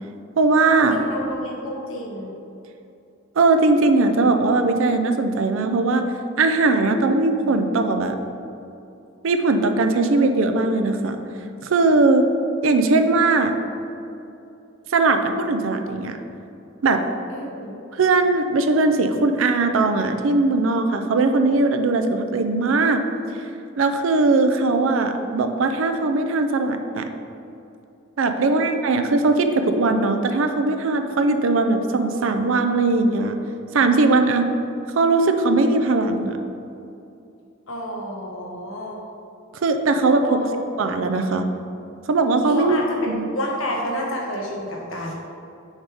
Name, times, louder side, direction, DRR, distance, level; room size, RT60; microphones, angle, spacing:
voice 1, 0.4-1.0 3.4-6.1 6.4-8.2 9.2-11.2 11.7-12.3 12.6-13.5 14.9-16.2 16.8-17.0 18.0-23.0 23.8-27.1 28.2-33.3 33.7-34.4 34.9-36.4 39.6-40.4 40.8-41.5 42.1-42.8 43.1-43.2, right 3 dB, 70° right, 7 dB, 0.4 m, -19 dB
voice 2, 0.9-2.3 17.3-17.8 28.4-28.7 34.2-34.6 37.7-39.0 40.2-40.8 42.4-45.1, left 1 dB, 75° left, -2 dB, 1.1 m, -30 dB
6.4 x 3.5 x 4.8 m, 2.7 s
head